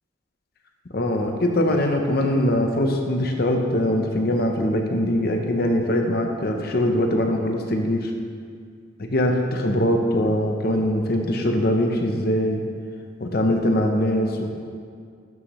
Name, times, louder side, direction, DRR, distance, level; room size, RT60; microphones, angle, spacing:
voice 1, 0.9-8.1 9.0-12.6 13.2-14.5, left 1 dB, 50° left, 3 dB, 0.8 m, -22 dB
12.0 x 6.4 x 3.1 m, 2.1 s
head